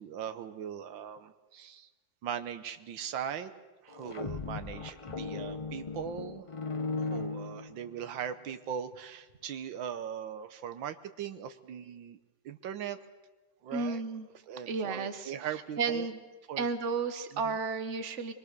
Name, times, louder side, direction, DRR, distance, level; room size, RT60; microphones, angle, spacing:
voice 1, 0.0-1.9 2.2-3.5 3.8-6.4 7.0-12.2 12.4-13.1 13.6-14.0 14.5-16.1 16.5-16.7, right 8 dB, 80° right, 10 dB, 1.7 m, -39 dB
sound 1, 3.9-8.1, left 4 dB, 55° left, 0.3 m, -37 dB
voice 2, 13.7-14.3 14.7-15.3 15.8-16.2 16.6-18.3, right 4 dB, 40° right, 9 dB, 1.5 m, -32 dB
24.0 x 22.0 x 6.7 m, 1.2 s
omnidirectional pair, 2.1 m